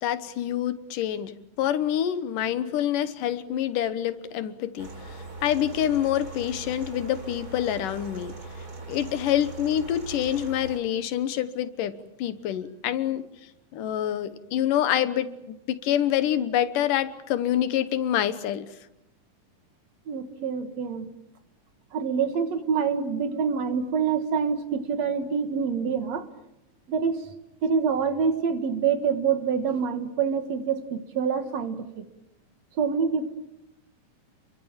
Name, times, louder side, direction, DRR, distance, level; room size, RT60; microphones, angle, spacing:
voice 1, 0.0-8.3 8.9-13.2 13.7-18.7, left 11 dB, 80° left, 12 dB, 2.7 m, -27 dB
sound 1, 4.8-10.8, right 3 dB, 30° right, 4.1 m, -40 dB
voice 2, 20.1-21.1 21.9-26.3 26.9-27.2 27.6-32.0 32.8-33.3, right 6 dB, 60° right, 9 dB, 2.5 m, -26 dB
29.5 x 23.0 x 7.3 m, 0.87 s
omnidirectional pair, 3.7 m